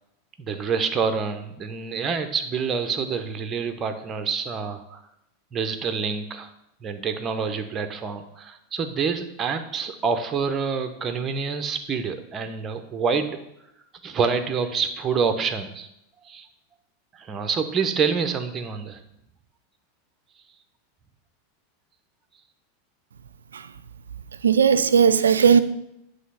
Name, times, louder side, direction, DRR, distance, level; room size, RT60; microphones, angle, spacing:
voice 1, 0.4-5.0 5.5-6.5 6.8-13.4 14.0-15.9 16.2-16.5 17.1-19.0, right 5 dB, 30° right, 8 dB, 0.9 m, -27 dB
voice 2, 24.4-25.6, right 7 dB, 80° right, 13 dB, 0.4 m, -17 dB
9.4 x 3.4 x 5.6 m, 0.81 s
figure-of-eight pair, 90°, 0 cm